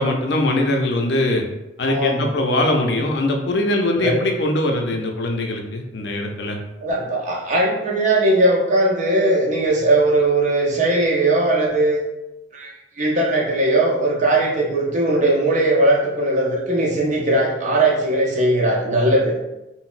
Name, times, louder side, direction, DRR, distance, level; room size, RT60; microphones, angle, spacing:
voice 1, 0.0-1.4 1.8-6.6, left 1 dB, 65° left, 3 dB, 0.4 m, -21 dB
voice 2, 1.9-2.3 4.0-4.2 6.8-12.0 12.5-19.3, right 1 dB, 45° right, -3 dB, 0.7 m, -19 dB
3.9 x 2.0 x 2.4 m, 0.98 s
head